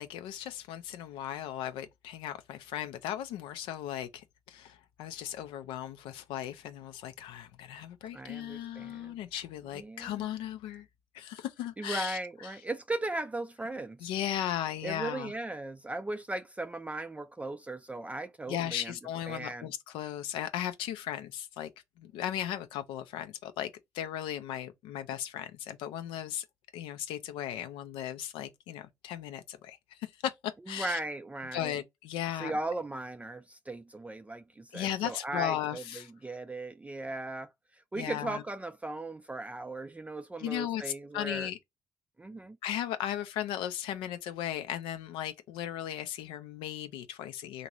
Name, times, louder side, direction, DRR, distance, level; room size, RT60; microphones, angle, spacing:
voice 1, 0.0-10.9 11.1-12.6 14.0-15.3 18.5-21.7 22.0-26.5 26.7-31.0 31.5-32.5 34.7-36.1 38.0-38.4 40.4-41.6 42.6-47.7, left 11 dB, 80° left, 0.4 m, -36 dB
voice 2, 8.1-9.1 9.7-10.2 11.8-14.1 14.8-18.9 19.3-19.7 30.7-31.8 32.4-41.5 42.2-42.6, right 2 dB, 15° right, 0.3 m, -37 dB
2.9 x 2.5 x 2.9 m
supercardioid pair, 55°, 9 cm